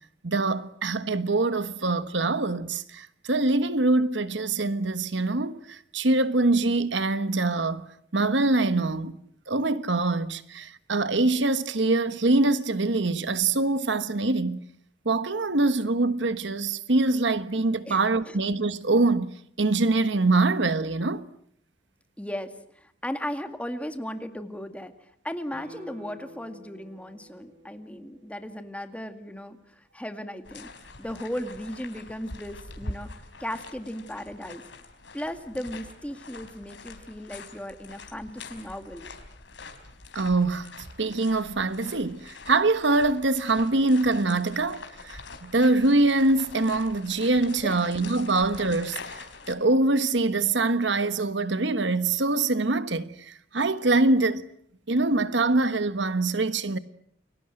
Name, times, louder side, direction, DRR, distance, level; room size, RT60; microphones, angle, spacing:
voice 1, 0.2-9.2 9.5-14.6 15.0-21.2 40.1-40.7 41.0-54.4 54.9-56.8, right 2 dB, 70° right, 1.3 m, -24 dB
voice 2, 17.9-18.4 22.2-30.7 31.0-34.6 35.1-39.1 47.6-47.8 48.3-48.4, equal, 5° left, 2.1 m, -36 dB
Guitar, 25.5-28.8 29.1-29.2, equal, 45° right, 7.5 m, -50 dB
sound 1, 30.4-49.5, left 3 dB, 85° left, 4.1 m, -44 dB
29.5 x 23.5 x 7.8 m
head